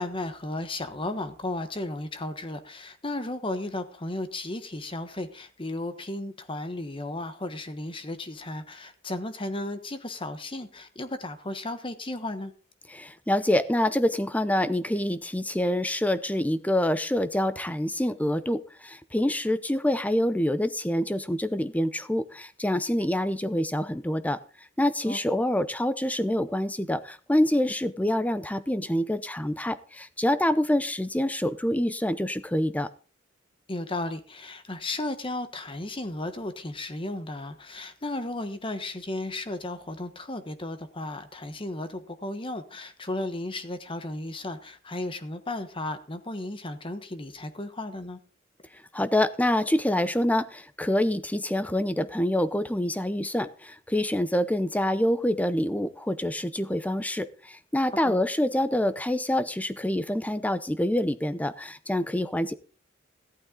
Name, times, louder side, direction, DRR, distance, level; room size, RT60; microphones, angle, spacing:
voice 1, 0.0-12.5 25.0-25.2 33.7-48.2 57.9-58.2, left 2 dB, 25° left, 1.3 m, -34 dB
voice 2, 12.9-24.4 24.8-32.9 48.9-62.5, left 1 dB, 10° left, 0.7 m, -26 dB
14.5 x 11.5 x 3.8 m
head